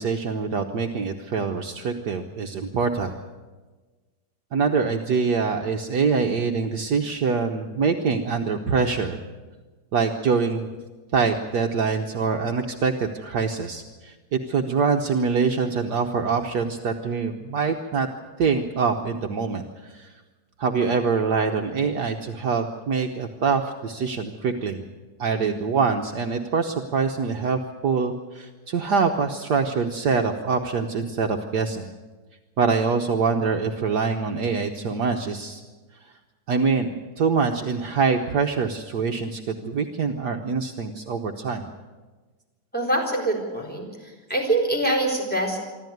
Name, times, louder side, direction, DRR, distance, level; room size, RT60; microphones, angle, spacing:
voice 1, 0.0-3.1 4.5-9.2 9.9-10.7 11.1-14.1 14.5-18.1 18.4-20.1 20.6-24.8 25.2-31.9 32.6-35.6 36.5-41.6, right 5 dB, 60° right, 4 dB, 1.5 m, -24 dB
voice 2, 42.7-45.6, right 1 dB, 5° left, -1 dB, 5.0 m, -24 dB
25.5 x 13.0 x 9.3 m, 1.3 s
omnidirectional pair, 2.1 m